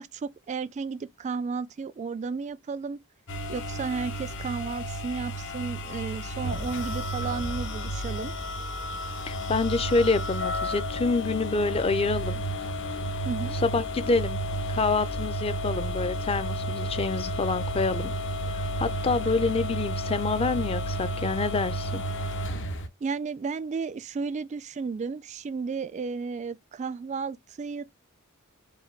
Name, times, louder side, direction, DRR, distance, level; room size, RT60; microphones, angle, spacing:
voice 1, 0.0-3.0 3.5-8.3 13.3-13.6 23.0-27.8, right 5 dB, 35° right, 0.3 m, -33 dB
sound 1, 3.3-22.9, equal, 60° left, 0.9 m, -32 dB
voice 2, 9.3-12.4 13.6-14.4 14.7-18.1 18.5-22.0, left 3 dB, 25° left, 0.5 m, -27 dB
4.8 x 2.2 x 4.4 m
head